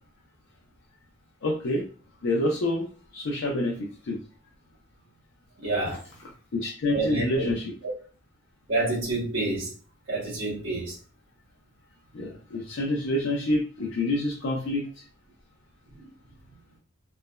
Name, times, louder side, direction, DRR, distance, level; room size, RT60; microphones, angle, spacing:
voice 1, 1.4-1.9 2.2-4.2 5.9-6.0 6.5-7.7 12.1-15.0, left 1 dB, 80° left, 0.5 m, -28 dB
voice 2, 5.6-6.0 6.9-7.5 8.7-9.7 10.1-10.9 16.0-16.1, right 2 dB, 75° right, 1.0 m, -28 dB
3.2 x 2.1 x 2.2 m
head